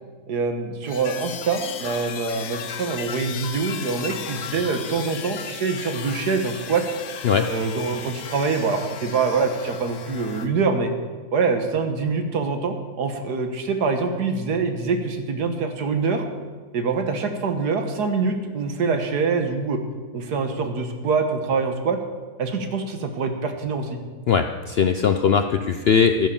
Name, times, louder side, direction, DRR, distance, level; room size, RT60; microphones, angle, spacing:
voice 1, 0.3-6.8 7.5-10.9 11.3-16.2 16.7-19.8 20.1-22.0 22.4-24.0, right 4 dB, 80° right, 6 dB, 1.9 m, -25 dB
sound 1, 0.9-10.5, left 8 dB, 90° left, 1.5 m, -35 dB
voice 2, 24.3-26.3, left 6 dB, 65° left, 8 dB, 0.6 m, -20 dB
13.0 x 9.9 x 7.1 m, 1.4 s
omnidirectional pair, 1.7 m